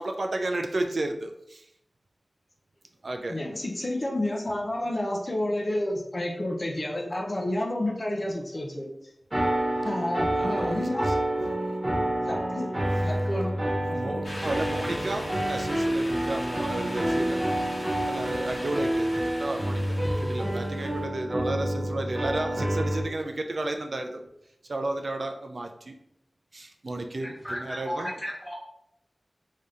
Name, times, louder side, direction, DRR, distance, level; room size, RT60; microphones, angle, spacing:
voice 1, 0.0-1.6 3.0-3.4 10.4-11.0 13.9-15.2 15.5-17.4 18.1-19.8 20.2-24.3 24.7-25.9 26.5-28.1, right 2 dB, 65° right, 5 dB, 0.4 m, -32 dB
voice 2, 3.3-8.9 9.8-11.1 12.2-12.7 13.0-14.3, left 1 dB, 45° left, 1 dB, 0.6 m, -30 dB
sound 1, 9.3-23.0, right 1 dB, 30° right, 1.1 m, -28 dB
sound 2, 14.2-21.0, left 1 dB, 75° left, 1.1 m, -39 dB
voice 3, 27.2-28.5, equal, 10° left, -3 dB, 1.2 m, -35 dB
3.3 x 2.7 x 3.7 m, 0.78 s
wide cardioid pair, 75°, 0 cm